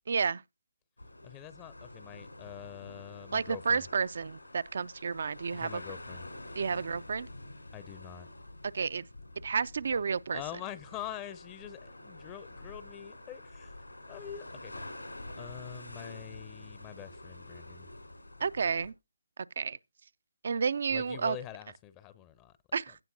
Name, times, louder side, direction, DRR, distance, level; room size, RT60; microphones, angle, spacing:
voice 1, 0.1-0.4 3.3-5.8 6.6-7.3 8.7-9.1 9.4-10.4 18.4-18.9 19.6-19.8 20.4-21.4 22.7-23.0, right 5 dB, 55° right, 0.4 m, -31 dB
sound 1, 1.0-18.9, left 1 dB, 85° left, 3.7 m, -48 dB
voice 2, 1.2-3.8 5.5-6.3 7.7-8.3 10.3-13.7 14.1-14.9 15.4-17.9 20.9-22.6 22.9-23.0, left 11 dB, 20° left, 0.6 m, -45 dB
16.5 x 5.7 x 2.7 m
figure-of-eight pair, 140°, 0 cm